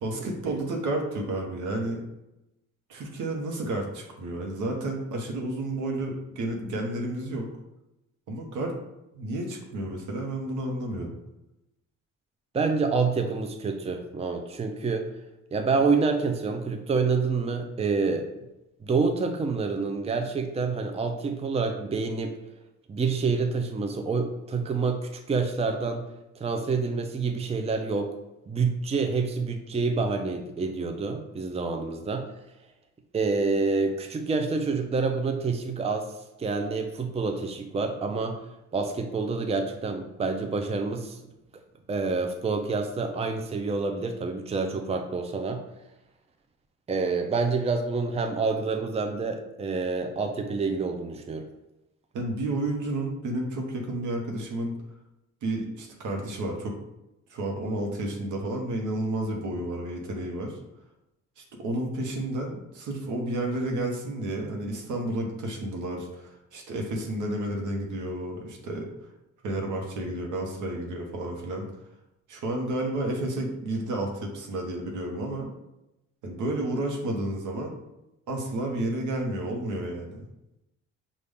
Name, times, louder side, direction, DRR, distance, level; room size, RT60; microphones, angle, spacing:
voice 1, 0.0-2.0 2.9-7.5 8.3-8.7 9.1-11.1 52.1-54.8 55.4-56.7 57.3-60.6 61.4-68.8 69.4-71.7 72.3-75.5 76.2-77.8 78.3-80.3, right 1 dB, 80° right, 1 dB, 1.1 m, -31 dB
voice 2, 12.5-15.1 15.5-18.3 18.8-22.3 22.9-26.1 26.4-28.1 28.5-32.3 33.1-36.1 36.4-38.4 38.7-41.2 41.9-45.6 46.9-51.4, right 4 dB, 20° right, 5 dB, 0.5 m, -27 dB
5.5 x 2.5 x 3.4 m, 0.91 s
cardioid pair, 90°, 30 cm